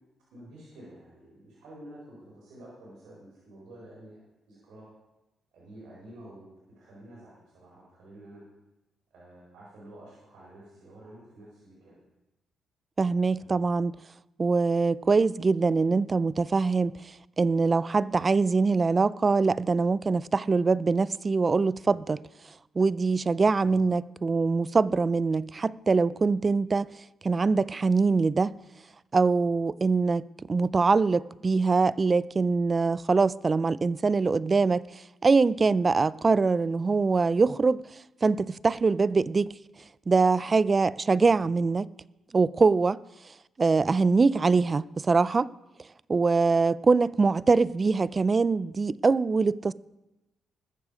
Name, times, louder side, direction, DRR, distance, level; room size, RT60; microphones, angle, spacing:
voice 1, 0.3-4.2 4.5-4.9 5.5-6.5 6.8-8.4 9.1-11.9 13.3-13.7 23.6-23.8 41.2-41.3, right 1 dB, 80° right, 4.5 m, -49 dB
voice 2, 13.0-13.9 14.4-16.9 17.4-22.2 22.8-26.9 27.2-28.6 29.1-34.8 35.2-37.8 38.2-39.5 40.1-41.8 42.3-43.0 43.6-45.5 46.1-49.7, right 4 dB, 35° right, 0.4 m, -23 dB
20.5 x 7.2 x 5.0 m
cardioid pair, 75°, 0 cm